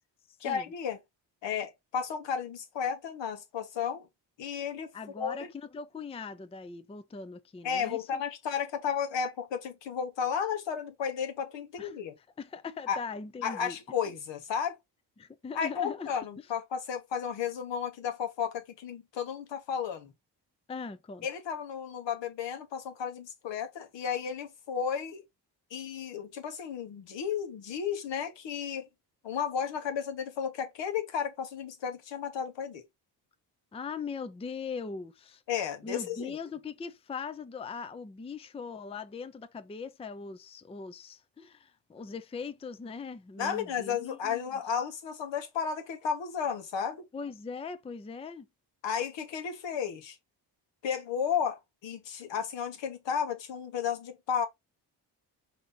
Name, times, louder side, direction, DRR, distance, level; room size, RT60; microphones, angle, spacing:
voice 1, 0.4-1.0 1.4-4.1 4.4-4.9 5.2-5.4 7.6-12.2 12.9-13.0 13.4-14.8 15.5-20.1 21.2-25.2 25.7-28.9 29.2-32.8 35.5-36.4 43.4-47.0 48.8-50.2 50.8-54.5, left 7 dB, 75° left, 1.1 m, -33 dB
voice 2, 4.9-8.2 11.8-13.8 15.2-16.1 20.7-21.3 33.7-35.4 35.8-44.4 47.1-48.5, left 5 dB, 15° left, 0.4 m, -40 dB
4.0 x 2.9 x 3.7 m
cardioid pair, 80°, 44 cm